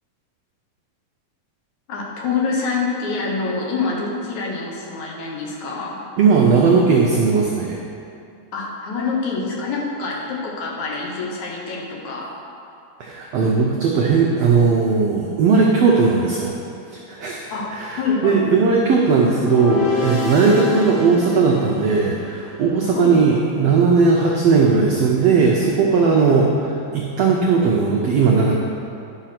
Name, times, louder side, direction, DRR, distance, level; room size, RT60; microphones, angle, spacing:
voice 1, 1.9-6.0 8.5-12.3 17.5-17.7 18.0-18.5 22.9-23.2, left 4 dB, 65° left, -2 dB, 2.3 m, -26 dB
voice 2, 6.2-7.8 13.0-16.5 17.1-28.5, right 4 dB, 80° right, -2 dB, 1.4 m, -17 dB
sound 1, 19.3-22.6, left 5 dB, 80° left, 2.9 m, -26 dB
10.5 x 5.6 x 5.9 m, 2.5 s
omnidirectional pair, 3.9 m